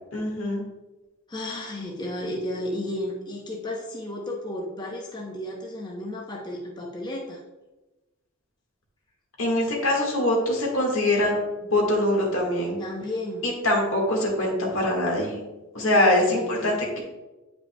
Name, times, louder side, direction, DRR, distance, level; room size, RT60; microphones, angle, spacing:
voice 1, 0.1-0.6 9.4-11.4 11.7-12.8 13.4-15.4 15.7-17.0, left 1 dB, 75° left, -1 dB, 1.6 m, -23 dB
voice 2, 1.3-7.4 12.8-13.4 16.0-16.8, left 1 dB, 20° left, -2 dB, 0.7 m, -33 dB
8.9 x 5.1 x 2.2 m, 1.1 s
head